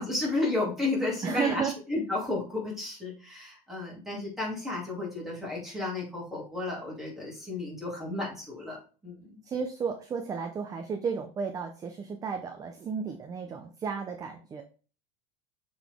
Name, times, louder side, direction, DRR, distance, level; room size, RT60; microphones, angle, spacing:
voice 1, 0.0-9.4, left 2 dB, ahead, -4 dB, 2.6 m, -32 dB
voice 2, 1.2-1.7 9.5-14.6, right 6 dB, 15° right, 5 dB, 0.5 m, -33 dB
7.0 x 3.9 x 3.5 m, 0.37 s
supercardioid pair, 155°, 20 cm